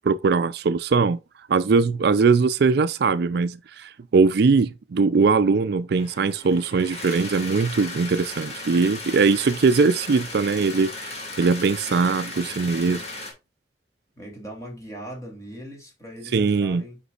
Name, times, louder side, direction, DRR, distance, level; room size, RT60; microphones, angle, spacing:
voice 1, 0.0-1.2 1.5-13.0 16.3-16.8, right 4 dB, 60° right, 0.4 m, -21 dB
sound 1, 6.0-13.3, left 2 dB, 35° left, 2.4 m, -36 dB
voice 2, 12.4-13.1 14.1-17.0, right 1 dB, 15° left, 3.1 m, -40 dB
8.1 x 5.2 x 2.4 m
head